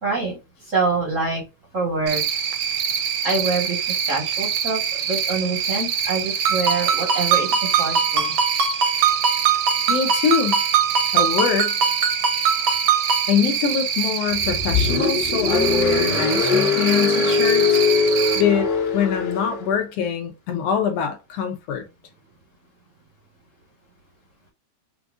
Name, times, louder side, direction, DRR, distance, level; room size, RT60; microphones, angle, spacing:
voice 1, 0.0-0.4 0.6-1.4 1.7-2.2 3.2-8.3, right 3 dB, 45° right, 1.0 m, -25 dB
Cricket, 2.1-18.4, right 8 dB, 80° right, 1.8 m, -25 dB
Ringtone, 6.5-13.3, right 6 dB, 65° right, 1.3 m, -22 dB
voice 2, 9.9-10.6 11.1-11.7 13.3-17.8 18.3-21.8, left 7 dB, 70° left, 1.7 m, -24 dB
Car, 14.3-19.7, left 5 dB, 45° left, 1.5 m, -21 dB
6.1 x 2.5 x 2.3 m
omnidirectional pair, 3.3 m